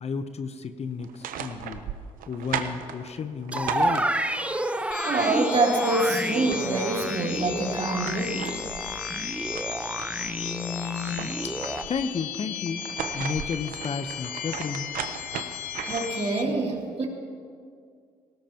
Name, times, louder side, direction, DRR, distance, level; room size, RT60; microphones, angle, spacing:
voice 1, 0.0-1.8 2.3-4.1 10.3-11.3 11.9-12.9 13.1-14.9 16.5-16.6, left 5 dB, 45° left, 10 dB, 0.9 m, -32 dB
sound 1, 1.0-4.5 6.0-6.1 6.3-7.2 7.7-10.3 10.7-12.1 12.7-16.3, right 8 dB, 70° right, 0.9 m, -37 dB
sound 2, 3.5-11.8, right 1 dB, 10° right, 0.9 m, -30 dB
sound 3, 4.9-16.4, left 9 dB, 75° left, 0.9 m, -36 dB
voice 2, 5.0-8.5 15.8-17.1, right 2 dB, 45° right, -1 dB, 3.0 m, -26 dB
19.0 x 17.5 x 3.0 m, 2.2 s
supercardioid pair, 55°, 15 cm